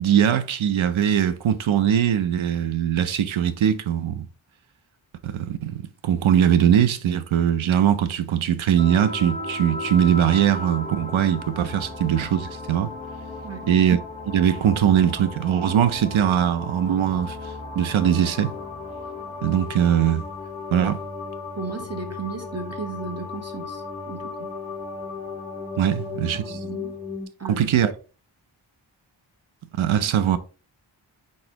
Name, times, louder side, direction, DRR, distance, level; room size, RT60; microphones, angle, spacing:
voice 1, 0.0-4.3 5.2-12.9 13.7-14.0 14.3-17.4 17.8-18.5 19.4-20.2 20.7-21.0 25.8-26.4 27.5-27.9 29.8-30.4, right 9 dB, 80° right, 0.6 m, -21 dB
sound 1, 8.8-27.3, left 3 dB, 15° left, 1.6 m, -35 dB
voice 2, 21.6-24.5 26.3-27.0 27.4-27.7, right 4 dB, 30° right, 1.1 m, -35 dB
4.1 x 3.8 x 2.9 m
cardioid pair, 50°, 47 cm